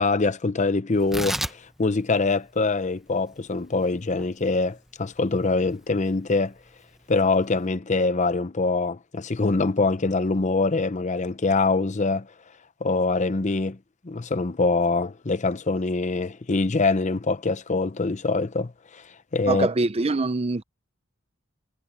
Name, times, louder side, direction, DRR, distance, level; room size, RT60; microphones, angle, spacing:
voice 1, 0.0-6.5 7.1-12.3 12.8-13.8 14.0-19.0 19.3-19.7, left 3 dB, 35° left, 0.7 m, -24 dB
Tearing, 0.9-7.7, equal, ahead, 0.9 m, -37 dB
voice 2, 19.5-20.6, right 3 dB, 30° right, 0.6 m, -24 dB
head